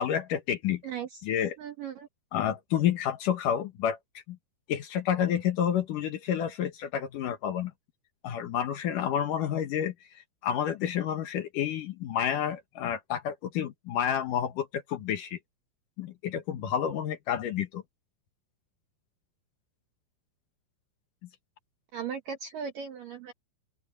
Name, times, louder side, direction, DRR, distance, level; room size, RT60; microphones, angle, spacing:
voice 1, 0.0-0.8 1.2-1.6 2.3-4.0 4.3-4.4 4.7-7.7 8.2-15.4 16.0-17.8, left 9 dB, 65° left, 2.2 m, -29 dB
voice 2, 0.8-1.2 1.6-2.1 21.9-23.3, right 7 dB, 65° right, 2.4 m, -37 dB
open air
omnidirectional pair, 5.3 m